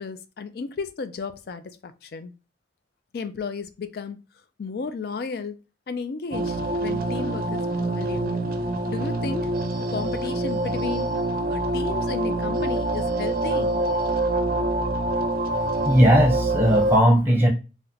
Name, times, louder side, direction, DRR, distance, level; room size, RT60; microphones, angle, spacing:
voice 1, 0.0-2.3 3.1-4.2 4.6-8.3 8.9-9.5 9.8-11.1 11.5-13.8, left 4 dB, 55° left, 0.4 m, -34 dB
sound 1, 6.3-17.0, right 2 dB, 50° right, 0.5 m, -25 dB
voice 2, 15.9-17.5, equal, 10° right, 0.7 m, -17 dB
2.9 x 2.1 x 3.7 m
head